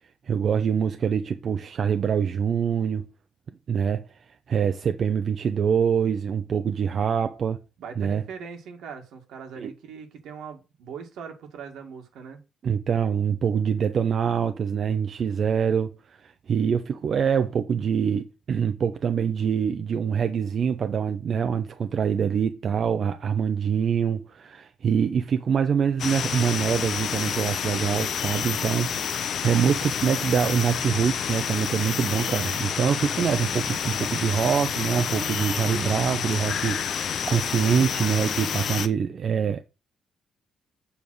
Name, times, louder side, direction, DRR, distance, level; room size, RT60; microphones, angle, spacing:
voice 1, 0.2-3.0 3.7-7.6 8.0-8.2 9.6-9.7 12.6-39.6, right 7 dB, 55° right, 0.5 m, -25 dB
voice 2, 7.8-12.4, right 6 dB, 80° right, 1.8 m, -40 dB
sound 1, 26.0-38.9, left 8 dB, 65° left, 0.7 m, -29 dB
7.2 x 3.4 x 6.2 m
cardioid pair, 90°, 0 cm